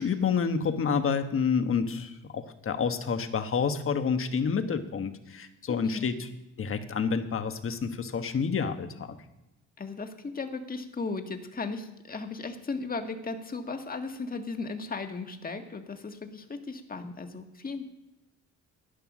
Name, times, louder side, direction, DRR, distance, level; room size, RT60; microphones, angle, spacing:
voice 1, 0.0-6.3 6.6-9.2, left 6 dB, 45° left, 8 dB, 1.4 m, -29 dB
voice 2, 5.7-6.1 9.8-17.8, left 4 dB, 30° left, 6 dB, 1.7 m, -36 dB
11.5 x 10.5 x 6.2 m, 0.97 s
cardioid pair, 90°, 30 cm